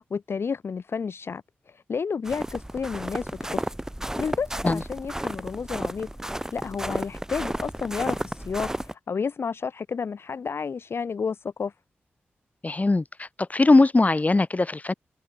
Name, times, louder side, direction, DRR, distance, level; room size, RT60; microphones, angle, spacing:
voice 1, 0.0-3.6 4.2-6.1 6.5-11.7, left 5 dB, 60° left, 0.5 m, -31 dB
sound 1, 2.3-8.9, right 1 dB, 10° right, 4.9 m, -32 dB
voice 2, 12.6-14.9, left 2 dB, 35° left, 1.1 m, -20 dB
cardioid pair, 40°, 5 cm